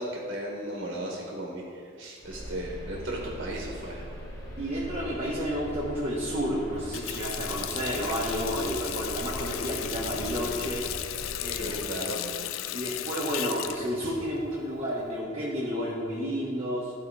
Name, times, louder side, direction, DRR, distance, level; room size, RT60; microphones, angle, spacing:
voice 1, 0.0-4.1 11.6-12.2, right 1 dB, 55° right, -1 dB, 1.2 m, -36 dB
sound 1, 2.2-11.8, equal, 15° left, 1.5 m, -41 dB
voice 2, 4.6-10.9 11.4-12.2 12.7-16.9, equal, 30° right, -6 dB, 1.1 m, -31 dB
Water tap faucet, 6.7-15.2, left 12 dB, 90° left, 0.4 m, -36 dB
12.5 x 4.3 x 4.7 m, 2.2 s
head